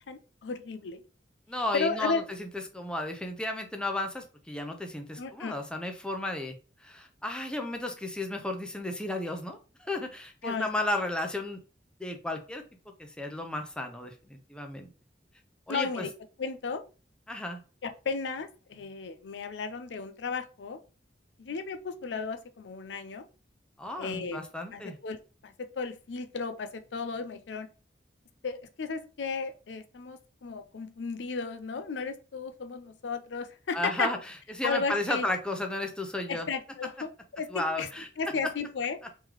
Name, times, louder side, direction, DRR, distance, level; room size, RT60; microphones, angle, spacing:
voice 1, 0.1-1.0 1.7-2.3 5.2-5.6 10.4-10.7 15.7-16.1 16.4-16.8 17.8-20.8 21.4-23.3 24.0-24.4 24.7-27.7 28.4-34.1 34.6-35.3 36.3-37.9 38.2-39.0, left 4 dB, 80° left, 9 dB, 0.5 m, -34 dB
voice 2, 1.5-6.5 6.8-11.6 12.0-12.6 13.0-14.9 15.7-16.1 17.3-17.6 23.8-25.0 33.7-36.5 37.5-38.1, left 1 dB, 5° left, 3 dB, 0.6 m, -33 dB
3.7 x 3.2 x 3.1 m, 0.34 s
head